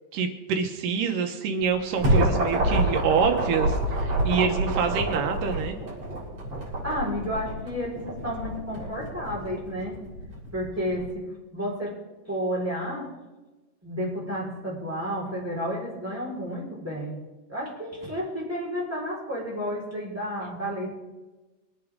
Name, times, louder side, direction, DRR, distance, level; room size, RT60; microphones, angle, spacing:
voice 1, 0.1-5.8, right 6 dB, 85° right, 5 dB, 2.6 m, -26 dB
sound 1, 1.6-11.1, right 1 dB, 50° right, 4.3 m, -28 dB
voice 2, 6.8-10.0 10.5-11.2 11.5-12.0 12.3-13.1 13.8-17.2 17.5-20.9, equal, 5° right, -6 dB, 4.4 m, -31 dB
24.0 x 8.4 x 3.6 m, 1.1 s
omnidirectional pair, 3.7 m